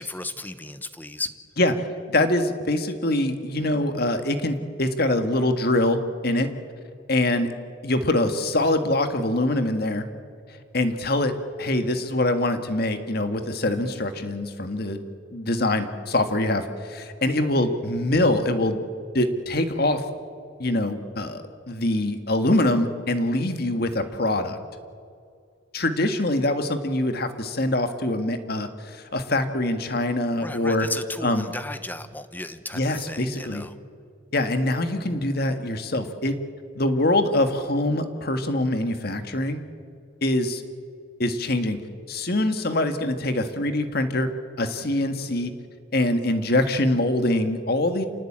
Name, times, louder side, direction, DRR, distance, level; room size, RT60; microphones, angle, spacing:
voice 1, 0.0-1.3 30.4-33.8, left 2 dB, 10° left, 11 dB, 0.9 m, -35 dB
voice 2, 2.1-6.5 7.1-7.5 7.8-10.1 10.7-11.3 11.6-15.0 15.3-18.8 19.1-20.0 20.6-24.6 25.7-30.9 31.2-31.5 32.7-33.6 34.3-36.4 36.8-39.6 40.2-40.6 41.2-41.8 42.1-44.3 44.6-45.5 45.9-48.0, left 1 dB, 55° left, 8 dB, 1.8 m, -24 dB
27.5 x 18.5 x 8.8 m, 2.3 s
head